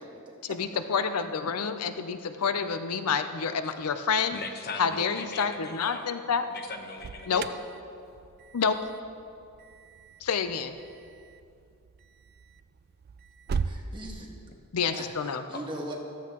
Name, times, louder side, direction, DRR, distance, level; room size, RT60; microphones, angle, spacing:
voice 1, 0.4-4.4 4.8-6.5 7.3-7.4 8.5-8.8 10.2-10.8 14.7-15.4, left 6 dB, 75° left, 9 dB, 0.6 m, -28 dB
voice 2, 4.3-6.0 6.5-7.5 15.5-15.6, left 3 dB, 45° left, 4 dB, 1.0 m, -39 dB
Alarm, 6.7-13.8, right 5 dB, 45° right, 0.3 m, -39 dB
voice 3, 13.6-14.3 14.9-15.9, right 1 dB, 20° right, -2 dB, 1.6 m, -40 dB
14.0 x 13.5 x 3.0 m, 2.5 s
head